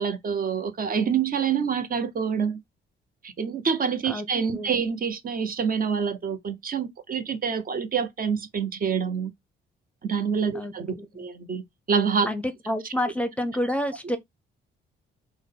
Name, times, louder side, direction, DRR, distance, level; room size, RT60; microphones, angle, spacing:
voice 1, 0.0-2.6 3.2-9.3 10.0-11.6 11.9-12.3, right 6 dB, 45° right, 0.8 m, -26 dB
voice 2, 12.3-14.2, left 1 dB, 5° left, 0.7 m, -28 dB
3.6 x 2.1 x 3.7 m
cardioid pair, 90°, 20 cm